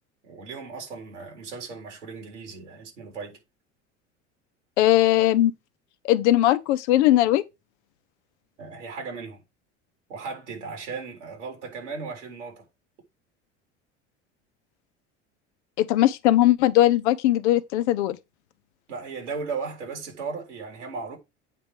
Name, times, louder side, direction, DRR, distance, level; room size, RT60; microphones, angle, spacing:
voice 1, 0.2-3.4 8.6-9.4 10.1-12.7 18.9-21.2, right 4 dB, 90° right, 4.0 m, -36 dB
voice 2, 4.8-5.5 6.0-7.4 15.8-18.2, left 14 dB, 75° left, 0.8 m, -19 dB
8.6 x 3.2 x 6.0 m
hypercardioid pair, 75°, 34 cm